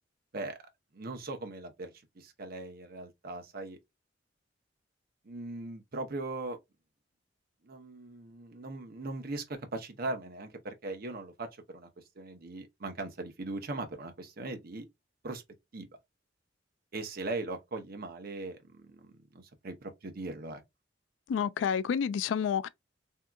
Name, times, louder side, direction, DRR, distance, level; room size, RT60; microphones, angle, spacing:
voice 1, 0.9-3.8 5.2-6.6 7.6-11.9 12.2-14.9 15.2-15.4 15.7-15.9 16.9-20.6, right 2 dB, 55° right, 0.8 m, -39 dB
voice 2, 21.3-22.7, left 7 dB, 85° left, 0.3 m, -29 dB
3.5 x 2.7 x 2.3 m
head